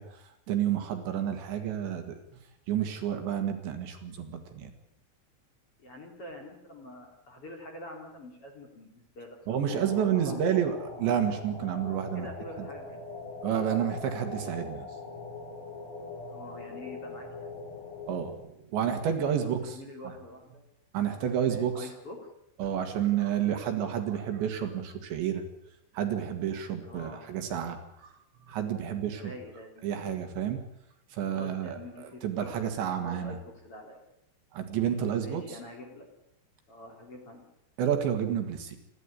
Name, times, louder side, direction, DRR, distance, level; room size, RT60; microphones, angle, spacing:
voice 1, 0.0-2.2 2.7-4.7 9.5-12.3 12.6-12.7 13.4-14.9 18.1-19.8 20.9-21.9 22.6-25.4 25.9-28.1 28.4-29.3 29.8-30.6 31.1-33.4 34.5-35.6 37.8-38.8, right 9 dB, 65° right, 6 dB, 4.1 m, -30 dB
voice 2, 5.8-10.4 12.1-13.0 16.3-17.5 19.4-20.6 21.3-22.2 26.8-27.3 29.1-30.0 31.3-32.6 33.0-34.0 35.2-36.1 36.7-37.4, left 1 dB, 30° left, 2 dB, 3.6 m, -46 dB
sound 1, 9.7-18.3, left 3 dB, 90° left, 8.1 m, -41 dB
28.5 x 12.0 x 10.0 m, 0.80 s
omnidirectional pair, 5.7 m